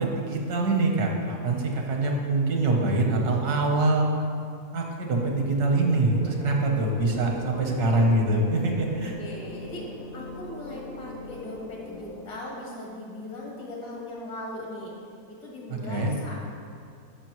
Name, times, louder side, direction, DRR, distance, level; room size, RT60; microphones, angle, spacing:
voice 1, 0.0-4.1 4.7-9.1 15.7-16.1, right 2 dB, 75° right, 1 dB, 1.6 m, -24 dB
sound 1, 6.1-12.2, left 3 dB, 60° left, 0.6 m, -40 dB
voice 2, 8.9-9.9 10.1-14.9 15.3-16.3, left 1 dB, 85° left, -3 dB, 2.1 m, -39 dB
12.0 x 5.4 x 3.1 m, 2.3 s
omnidirectional pair, 1.7 m